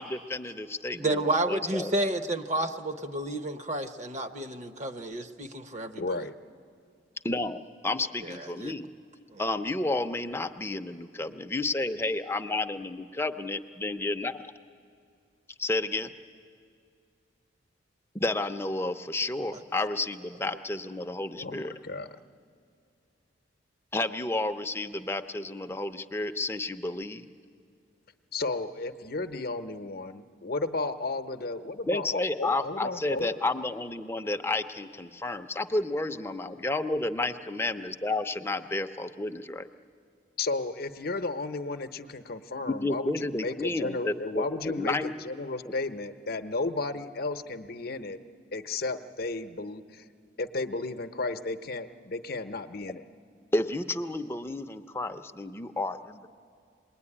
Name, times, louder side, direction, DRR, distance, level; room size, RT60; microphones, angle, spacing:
voice 1, 0.0-1.9 7.2-8.9 9.4-14.5 15.6-16.1 18.1-21.7 23.9-27.2 31.9-39.7 42.7-45.1 45.6-45.7 53.5-56.3, left 2 dB, 15° left, 8 dB, 0.6 m, -31 dB
voice 2, 0.9-6.2 8.2-8.7 9.3-9.4, right 1 dB, 35° right, 6 dB, 0.8 m, -31 dB
voice 3, 6.0-6.3 21.4-22.1 28.3-33.4 40.4-48.2 48.5-50.1 50.4-53.0, left 3 dB, 50° left, 8 dB, 0.8 m, -33 dB
26.0 x 21.0 x 9.9 m, 2.4 s
head